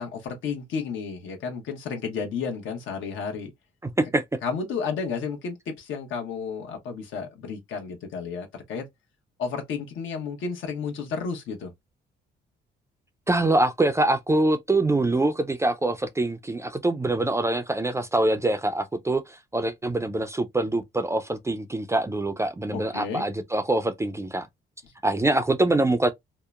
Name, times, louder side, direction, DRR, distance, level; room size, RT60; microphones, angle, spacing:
voice 1, 0.0-3.5 4.4-8.9 9.4-11.7 22.7-23.2 24.8-24.9, left 5 dB, 80° left, 1.0 m, -32 dB
voice 2, 3.8-4.2 13.3-24.5 25.0-26.1, right 2 dB, 15° right, 0.3 m, -24 dB
2.8 x 2.1 x 2.3 m
cardioid pair, 90°, 20 cm